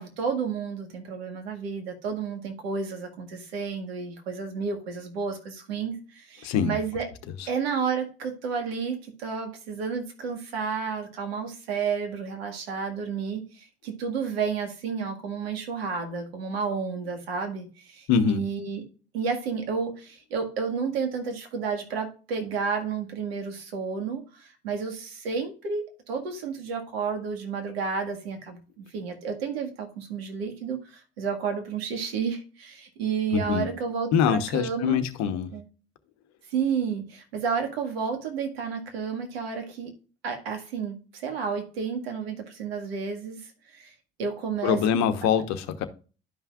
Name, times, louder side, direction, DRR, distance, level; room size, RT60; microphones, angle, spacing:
voice 1, 0.0-7.1 7.5-18.8 19.1-35.0 35.5-35.6 36.5-39.9 40.2-43.9 44.2-44.8, right 6 dB, 80° right, 1.9 m, -31 dB
voice 2, 6.4-6.8 7.4-7.5 18.1-18.4 33.3-33.7 34.1-35.5 44.6-45.9, left 7 dB, 65° left, 1.1 m, -24 dB
12.0 x 5.6 x 2.4 m
hypercardioid pair, 60°, 30 cm